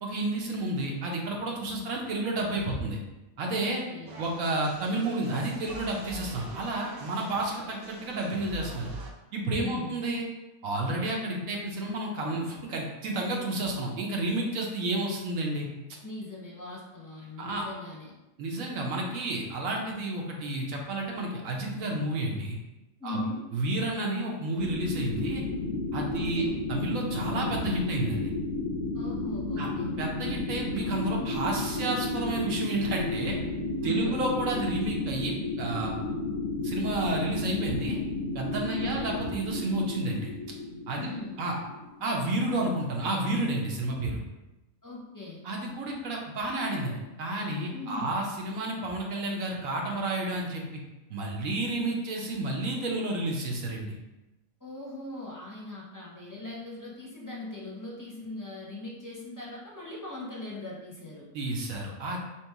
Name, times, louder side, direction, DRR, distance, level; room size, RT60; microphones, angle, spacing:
voice 1, 0.0-3.0 3.4-3.8 4.2-8.9 9.3-10.2 10.6-15.7 17.4-17.6 18.4-22.6 23.0-23.2 23.5-25.4 25.9-28.3 29.6-29.7 30.0-33.4 33.8-35.9 36.6-38.0 38.3-40.3 40.9-41.1 41.4-41.5 42.0-44.2 45.4-50.6 51.1-54.0 61.3-62.2, right 2 dB, 80° right, -1 dB, 1.1 m, -31 dB
voice 2, 3.6-4.2 9.6-10.0 16.0-18.1 23.0-23.4 26.1-26.6 28.9-30.0 33.8-34.2 38.6-39.0 41.0-41.3 44.8-45.4 47.7-48.1 54.6-61.3, left 2 dB, 20° left, -4 dB, 0.5 m, -40 dB
sound 1, 4.1-9.1, right 3 dB, 55° right, 0.7 m, -44 dB
sound 2, 24.6-42.2, left 2 dB, 60° left, 0.7 m, -33 dB
3.1 x 3.0 x 4.5 m, 0.99 s
omnidirectional pair, 1.4 m